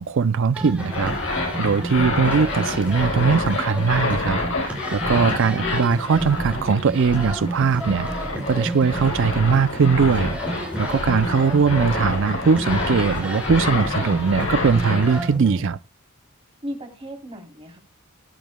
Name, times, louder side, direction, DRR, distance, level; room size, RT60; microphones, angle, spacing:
voice 1, 0.0-15.8, right 5 dB, 55° right, 0.5 m, -21 dB
sound 1, 0.5-15.6, right 1 dB, 5° right, 3.4 m, -31 dB
sound 2, 0.7-14.8, left 3 dB, 45° left, 5.3 m, -46 dB
sound 3, 0.8-15.2, left 2 dB, 60° left, 4.0 m, -28 dB
voice 2, 5.4-5.9 11.3-11.6 16.6-17.8, equal, 25° right, 3.5 m, -37 dB
18.0 x 9.2 x 2.2 m
head